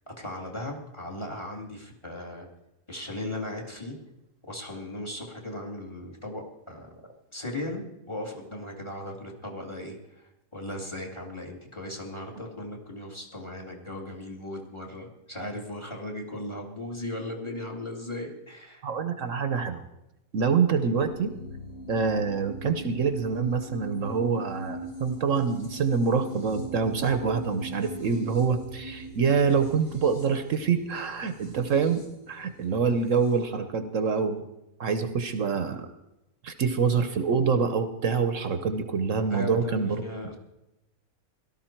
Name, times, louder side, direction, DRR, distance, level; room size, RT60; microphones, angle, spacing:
voice 1, 0.1-2.5 2.9-4.0 4.5-7.0 7.3-10.0 10.5-18.8 39.3-40.4, left 1 dB, 20° left, 1 dB, 2.2 m, -37 dB
voice 2, 18.8-19.8 20.3-21.3 21.9-34.4 34.8-35.9 36.4-40.0, right 5 dB, 65° right, 9 dB, 1.1 m, -26 dB
sound 1, 21.0-33.4, right 1 dB, 65° left, 4.0 m, -40 dB
17.5 x 12.5 x 4.5 m, 0.94 s
omnidirectional pair, 1.5 m